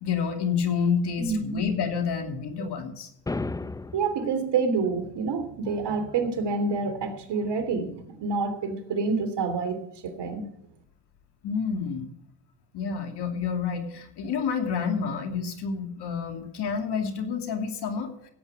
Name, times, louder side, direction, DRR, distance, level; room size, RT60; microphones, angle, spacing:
voice 1, 0.0-3.1 11.4-12.1 12.7-18.1, left 6 dB, 55° left, 5 dB, 2.7 m, -29 dB
voice 2, 1.2-1.6 2.6-2.7 3.9-9.8 10.0-10.5, right 4 dB, 55° right, 7 dB, 3.2 m, -28 dB
sound 1, 3.3-4.3, left 3 dB, 10° left, 0.5 m, -32 dB
16.0 x 8.8 x 4.8 m, 0.74 s
supercardioid pair, 75°, 48 cm